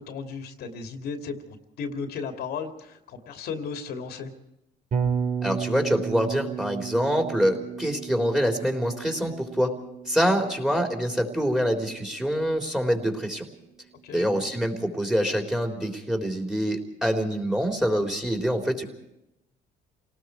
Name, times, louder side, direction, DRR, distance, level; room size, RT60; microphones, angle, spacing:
voice 1, 0.0-4.3 14.0-14.4, left 5 dB, 70° left, 6 dB, 2.6 m, -35 dB
Bass guitar, 4.9-13.0, right 7 dB, 50° right, 4.9 m, -34 dB
voice 2, 5.4-9.7 10.1-13.5 14.1-18.8, equal, 5° right, 4 dB, 3.7 m, -25 dB
28.5 x 19.0 x 4.7 m, 0.85 s
cardioid pair, 110°, 17 cm